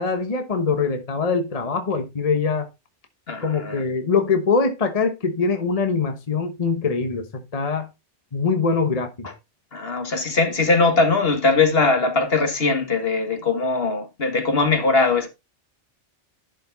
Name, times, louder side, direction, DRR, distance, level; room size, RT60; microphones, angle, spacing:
voice 1, 0.0-2.7 3.4-7.9 8.3-9.3, left 4 dB, 35° left, 1.2 m, -23 dB
voice 2, 3.3-3.8 9.7-15.3, left 3 dB, 60° left, 1.9 m, -20 dB
11.5 x 5.3 x 3.9 m
omnidirectional pair, 1.2 m